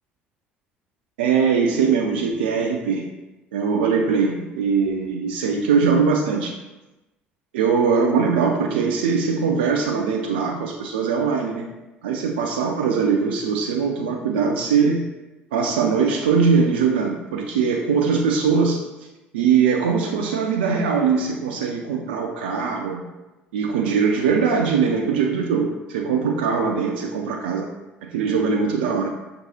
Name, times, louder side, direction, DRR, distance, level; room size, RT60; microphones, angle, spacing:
voice 1, 1.2-3.1 3.5-6.5 7.5-11.7 12.0-15.0 15.5-18.8 19.3-23.0 23.5-27.7 28.0-29.1, right 5 dB, 75° right, 1 dB, 0.4 m, -21 dB
5.9 x 2.5 x 2.8 m, 1.0 s
figure-of-eight pair, 55°, 5 cm